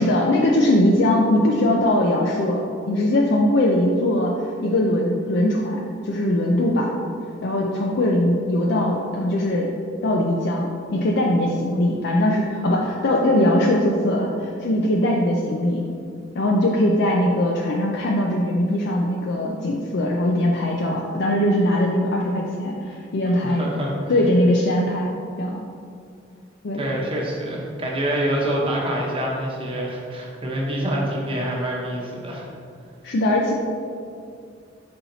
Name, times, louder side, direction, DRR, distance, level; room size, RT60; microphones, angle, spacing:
voice 1, 0.0-6.9 7.4-9.7 10.0-15.8 16.3-23.7 24.1-25.6 26.6-26.8 33.0-33.5, left 1 dB, 65° left, -1 dB, 0.5 m, -21 dB
voice 2, 23.4-23.9 26.7-32.5, right 1 dB, 30° right, -3 dB, 0.9 m, -26 dB
5.6 x 4.4 x 4.0 m, 2.4 s
head